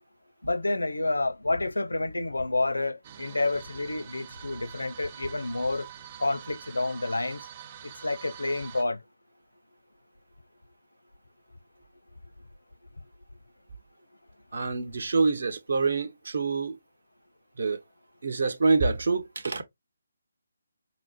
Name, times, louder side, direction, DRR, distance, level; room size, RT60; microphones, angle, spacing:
voice 1, 0.4-5.9 6.2-7.4 8.0-9.0, left 2 dB, 75° left, 0.6 m, -29 dB
sound 1, 3.0-8.8, right 10 dB, 30° right, 0.3 m, -46 dB
voice 2, 14.5-16.8 17.6-17.8 18.2-19.6, right 4 dB, 55° right, 0.9 m, -26 dB
5.7 x 2.0 x 2.9 m
figure-of-eight pair, 145°, 0 cm